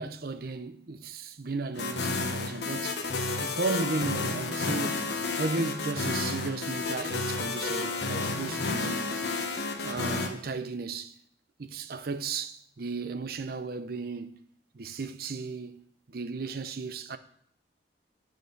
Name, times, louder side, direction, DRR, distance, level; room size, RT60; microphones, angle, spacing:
voice 1, 0.0-3.1 3.4-5.1 5.4-9.2 9.8-11.1 11.6-14.4 14.7-15.8 16.1-17.2, right 3 dB, 55° right, 0.6 m, -35 dB
sound 1, 1.7-10.3, left 3 dB, 65° left, 1.0 m, -31 dB
9.0 x 6.5 x 5.2 m
head